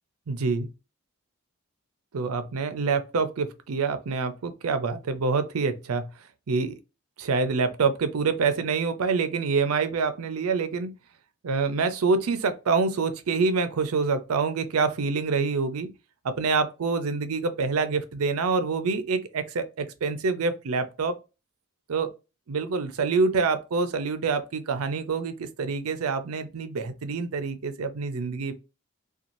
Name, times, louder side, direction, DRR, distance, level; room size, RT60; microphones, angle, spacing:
voice 1, 0.3-0.7 2.1-6.0 6.5-6.7 7.2-10.9 11.4-15.9 16.2-21.1 21.9-22.1 22.5-28.5, right 4 dB, 90° right, 0.5 m, -26 dB
2.6 x 2.3 x 2.9 m
head